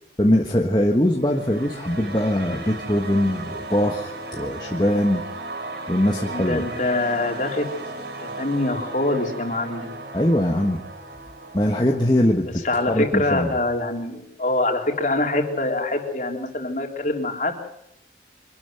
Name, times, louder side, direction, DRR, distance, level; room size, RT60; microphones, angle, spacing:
voice 1, 0.2-5.2 5.9-6.7 10.1-10.8 11.5-12.6 12.9-13.6, left 1 dB, 25° left, 1 dB, 1.4 m, -21 dB
sound 1, 1.1-12.1, right 2 dB, 75° right, 3.5 m, -36 dB
voice 2, 6.3-7.7 8.2-9.9 12.4-17.5, left 2 dB, 45° left, 2 dB, 3.5 m, -24 dB
25.0 x 12.5 x 9.3 m, 0.78 s
head